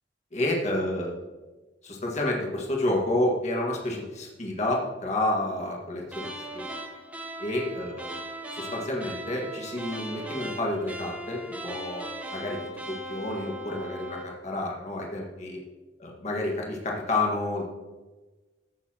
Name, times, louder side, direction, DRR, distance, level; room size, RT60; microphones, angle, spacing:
voice 1, 0.3-1.2 1.8-6.6 7.4-8.1 8.5-12.1 12.3-12.6 12.9-15.6 16.0-17.7, left 1 dB, 40° left, -1 dB, 1.8 m, -29 dB
sound 1, 6.1-14.3, right 1 dB, 10° right, 1.2 m, -38 dB
15.0 x 6.8 x 3.0 m, 1.2 s
head